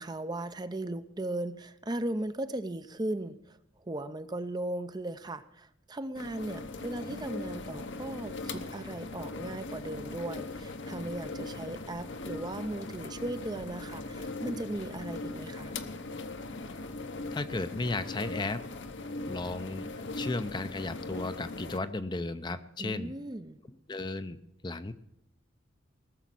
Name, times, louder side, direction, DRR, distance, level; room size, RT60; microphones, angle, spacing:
voice 1, 0.0-3.6 3.8-15.7 22.8-23.6, right 1 dB, 20° right, 11 dB, 0.5 m, -37 dB
sound 1, 6.2-21.8, left 2 dB, 65° left, 1.0 m, -40 dB
voice 2, 17.3-18.6 19.3-23.1 23.9-24.4 24.6-24.9, left 2 dB, 25° left, 11 dB, 0.5 m, -34 dB
18.5 x 7.1 x 7.6 m, 0.80 s
head